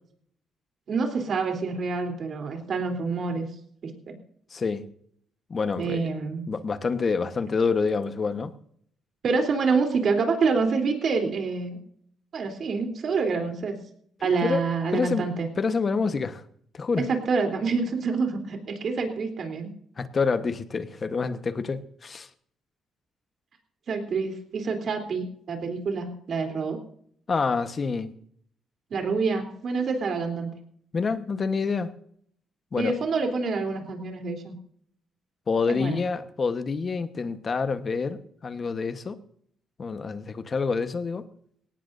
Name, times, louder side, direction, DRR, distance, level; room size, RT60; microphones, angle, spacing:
voice 1, 0.9-3.5 3.8-4.1 5.8-6.4 9.2-11.8 12.3-13.8 14.2-15.5 17.0-19.7 23.9-26.8 28.9-30.5 32.8-34.5 35.7-36.0, right 4 dB, 55° right, 3.5 m, -27 dB
voice 2, 4.5-4.9 5.5-6.1 6.5-8.5 14.2-15.3 15.6-16.4 16.7-17.0 20.0-22.3 27.3-28.1 30.9-31.9 32.7-33.0 35.5-39.2 39.8-41.3, left 4 dB, 40° left, 1.2 m, -27 dB
18.0 x 18.0 x 2.7 m
cardioid pair, 90°, 0 cm